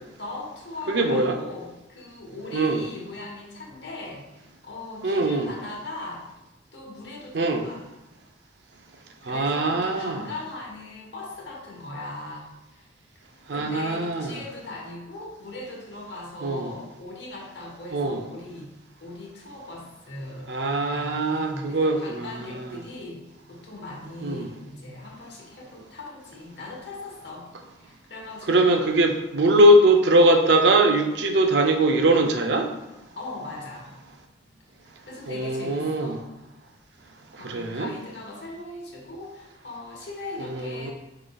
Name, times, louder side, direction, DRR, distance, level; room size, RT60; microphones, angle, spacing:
voice 1, 0.2-6.2 6.7-7.9 9.0-12.8 13.5-18.7 19.0-20.5 20.9-23.2 23.5-27.5 27.8-28.9 33.2-33.9 34.8-36.2 37.4-40.9, left 2 dB, 70° left, -2 dB, 1.1 m, -39 dB
voice 2, 0.9-1.4 2.5-2.8 5.0-5.5 7.3-7.7 9.2-10.2 13.5-14.4 16.4-16.7 17.9-18.2 20.5-22.8 24.2-24.5 28.5-32.7 35.3-36.2 37.4-37.9 40.5-40.9, right 1 dB, 70° right, 5 dB, 0.5 m, -21 dB
4.9 x 3.7 x 2.3 m, 0.94 s
head